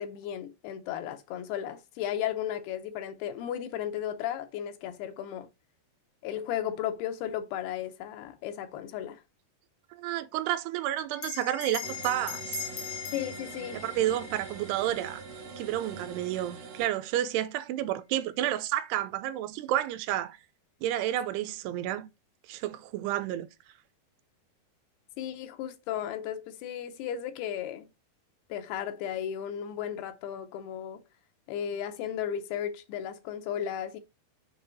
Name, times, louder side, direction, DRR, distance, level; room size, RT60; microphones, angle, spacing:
voice 1, 0.0-5.5 6.2-9.2 13.1-13.8 25.2-27.9 28.5-31.0 31.5-34.0, left 10 dB, 80° left, 2.7 m, -35 dB
voice 2, 9.9-12.6 13.7-15.2 15.6-20.4 20.8-22.1 22.5-23.5, right 13 dB, 90° right, 2.7 m, -30 dB
Bell, 11.2-16.0, left 7 dB, 65° left, 1.9 m, -41 dB
sound 1, 11.8-16.9, right 5 dB, 60° right, 2.5 m, -44 dB
6.8 x 3.9 x 3.9 m
omnidirectional pair, 4.7 m